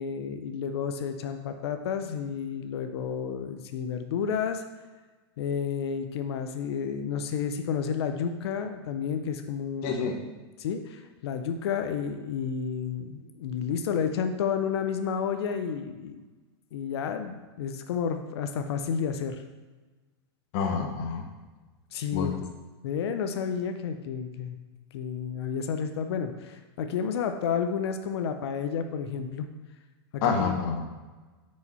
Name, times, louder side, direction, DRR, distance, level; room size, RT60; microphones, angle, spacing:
voice 1, 0.0-4.6 5.4-10.1 10.6-16.2 16.7-19.4 21.9-22.3 22.8-24.6 24.9-29.5 30.1-30.6, left 7 dB, 70° left, 7 dB, 0.6 m, -31 dB
voice 2, 9.8-10.2 20.5-21.3 22.1-22.4 30.2-30.8, left 5 dB, 45° left, 3 dB, 1.1 m, -28 dB
5.5 x 4.8 x 4.1 m, 1.3 s
hypercardioid pair, 135°, 14 cm